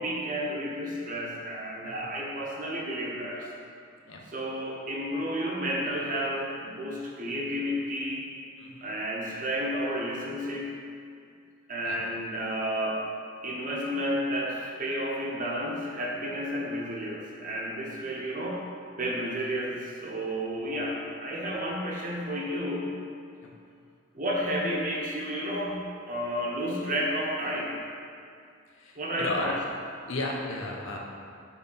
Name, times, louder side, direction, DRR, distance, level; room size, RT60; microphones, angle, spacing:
voice 1, 0.0-3.5 4.3-8.3 8.8-10.7 11.7-13.0 13.4-18.6 19.0-22.9 24.1-27.8 29.0-29.5, equal, 40° right, -3 dB, 1.0 m, -31 dB
voice 2, 8.6-8.9 11.8-12.0 23.4-23.5 28.7-29.5 30.1-31.0, left 2 dB, 70° left, -1 dB, 0.9 m, -34 dB
6.0 x 3.6 x 6.0 m, 2.3 s
head